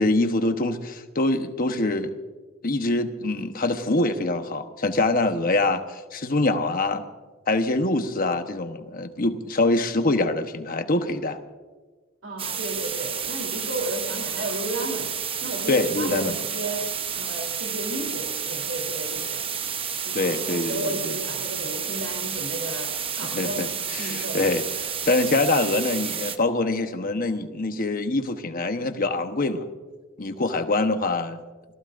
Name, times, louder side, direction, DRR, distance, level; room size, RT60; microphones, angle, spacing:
voice 1, 0.0-2.2 2.6-7.0 7.5-11.4 15.7-16.3 20.1-21.1 23.3-23.7 23.9-24.6 25.0-29.7 30.2-31.4, left 2 dB, 45° left, 7 dB, 1.0 m, -24 dB
voice 2, 12.2-15.1 15.4-16.9 17.1-19.5 20.0-23.6 24.0-24.5, right 1 dB, 70° right, 1 dB, 3.4 m, -33 dB
sound 1, 12.4-26.4, right 7 dB, 25° right, 0.8 m, -30 dB
28.5 x 18.0 x 2.6 m, 1.3 s
head